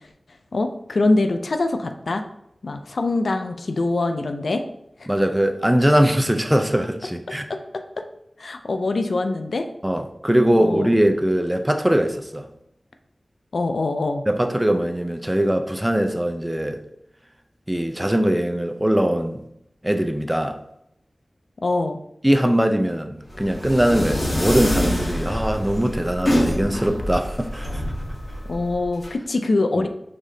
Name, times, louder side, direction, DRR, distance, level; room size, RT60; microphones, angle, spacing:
voice 1, 0.5-2.2 2.6-4.6 5.0-5.1 7.5-8.0 8.4-9.7 10.6-10.9 13.5-14.2 21.6-22.0 28.5-29.9, left 2 dB, 85° left, 0.4 m, -24 dB
voice 2, 5.1-7.5 9.8-12.5 14.3-16.8 17.7-19.4 19.8-20.6 22.2-27.8 29.8-29.9, right 1 dB, 10° right, 0.5 m, -21 dB
sound 1, 23.3-29.1, left 1 dB, 55° left, 1.2 m, -25 dB
5.1 x 3.6 x 2.7 m
wide cardioid pair, 50°, 0 cm